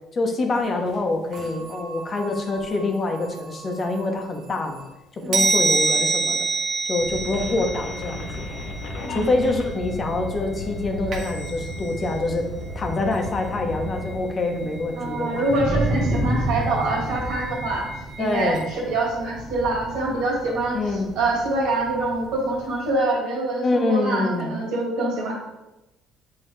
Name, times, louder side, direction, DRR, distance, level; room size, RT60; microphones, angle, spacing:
voice 1, 0.1-4.8 5.3-6.5 6.9-8.5 9.1-12.5 12.7-15.4 18.2-18.7 20.7-21.1 23.6-24.5, left 2 dB, 35° left, 3 dB, 1.0 m, -25 dB
sound 1, 0.6-0.7 0.9-1.0 1.3-4.9 5.3-10.5 11.1-12.3 12.6-18.7, right 3 dB, 55° right, 1.3 m, -30 dB
sound 2, 7.0-14.3, left 2 dB, 70° left, 1.0 m, -34 dB
sound 3, 7.7-22.9, right 1 dB, 40° right, 1.2 m, -33 dB
voice 2, 9.0-9.5 15.0-17.8 18.2-20.8 21.2-25.3, right 2 dB, 85° right, -3 dB, 2.2 m, -25 dB
7.6 x 3.8 x 3.3 m, 0.99 s
cardioid pair, 110°, 0 cm